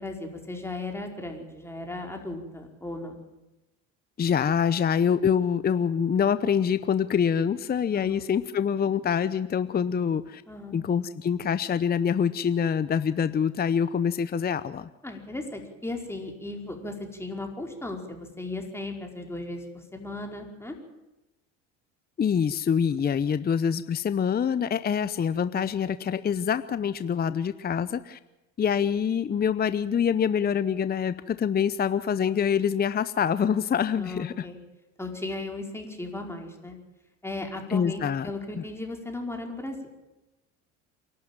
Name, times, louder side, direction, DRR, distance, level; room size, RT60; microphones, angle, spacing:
voice 1, 0.0-3.2 7.9-8.3 10.5-10.9 15.0-20.8 34.0-34.6 35.0-36.8 37.2-39.8, left 2 dB, 5° left, 2 dB, 5.1 m, -36 dB
voice 2, 4.2-10.4 10.7-14.9 22.2-28.2 28.6-34.5 37.7-38.3 38.6-38.7, left 7 dB, 25° left, 14 dB, 0.8 m, -25 dB
27.5 x 12.0 x 9.0 m, 0.99 s
supercardioid pair, 80°, 35 cm